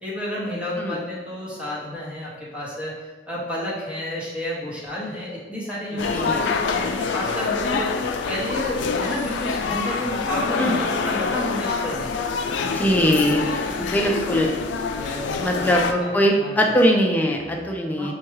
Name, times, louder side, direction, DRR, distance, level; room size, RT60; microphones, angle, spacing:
voice 1, 0.0-2.9 3.3-7.9 8.2-12.1 12.8-14.2 15.0-16.8 18.0-18.1, left 1 dB, 5° right, -7 dB, 0.9 m, -31 dB
sound 1, 6.0-15.9, left 5 dB, 80° left, 0.3 m, -26 dB
voice 2, 6.1-6.5 10.6-10.8 12.6-13.5 13.8-14.5 15.4-18.1, equal, 10° left, 1 dB, 0.4 m, -21 dB
5.6 x 2.3 x 3.0 m, 1.3 s
head